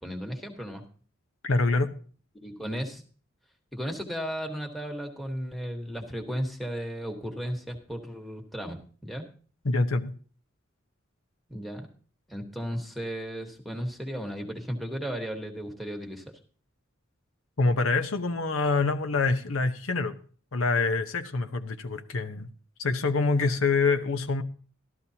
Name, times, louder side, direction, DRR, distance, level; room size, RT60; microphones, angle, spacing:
voice 1, 0.0-0.8 2.4-3.0 3.7-9.3 11.5-11.9 12.3-16.2, equal, ahead, 3 dB, 1.3 m, -35 dB
voice 2, 1.4-1.9 9.6-10.1 17.6-20.2 20.5-22.5 22.8-24.4, left 3 dB, 90° left, 8 dB, 0.9 m, -26 dB
13.5 x 12.5 x 2.8 m, 0.42 s
head